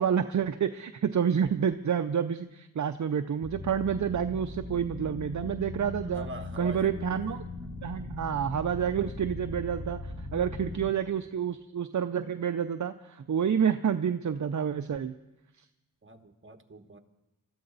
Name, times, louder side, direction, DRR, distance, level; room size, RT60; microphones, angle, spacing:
voice 1, 0.0-6.3 6.6-7.4 7.8-15.1, right 8 dB, 55° right, 9 dB, 0.6 m, -29 dB
sound 1, 3.4-10.9, left 2 dB, 5° right, 1.7 m, -39 dB
voice 2, 6.1-7.4 16.0-17.0, right 1 dB, 35° right, 7 dB, 1.3 m, -44 dB
22.5 x 13.5 x 4.0 m, 0.95 s
wide cardioid pair, 65°, 35 cm